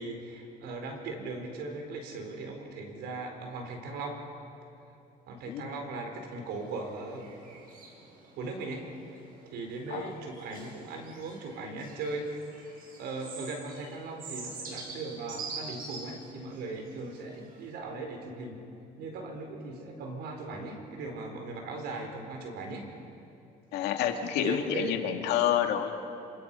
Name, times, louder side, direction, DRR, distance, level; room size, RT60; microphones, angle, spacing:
voice 1, 0.0-4.2 5.3-7.3 8.4-8.9 9.4-12.3 13.0-18.6 19.0-22.9 24.0-24.2 24.4-25.0, right 3 dB, 80° right, 3 dB, 4.4 m, -38 dB
sound 1, 6.5-17.7, right 4 dB, 60° right, 5.3 m, -46 dB
voice 2, 23.7-25.9, left 10 dB, 90° left, 4 dB, 2.1 m, -28 dB
26.5 x 26.5 x 5.6 m, 2.7 s
cardioid pair, 110°, 17 cm